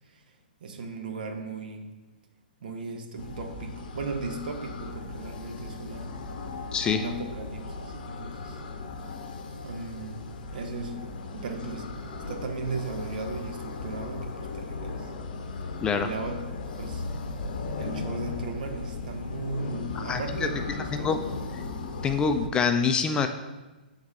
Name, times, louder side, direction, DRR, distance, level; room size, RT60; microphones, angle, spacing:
voice 1, 0.6-1.8 2.6-6.2 6.9-8.6 9.6-10.2 10.5-11.1 11.3-11.9 12.3-15.1 16.0-17.0 17.7-21.3, right 3 dB, 65° right, 4 dB, 1.0 m, -36 dB
sound 1, 3.2-22.5, left 3 dB, 60° left, 0.7 m, -37 dB
voice 2, 20.0-20.5 20.9-21.2 22.0-23.3, left 6 dB, 15° left, 7 dB, 0.3 m, -25 dB
7.9 x 4.0 x 3.6 m, 1.1 s
hypercardioid pair, 125°, 5 cm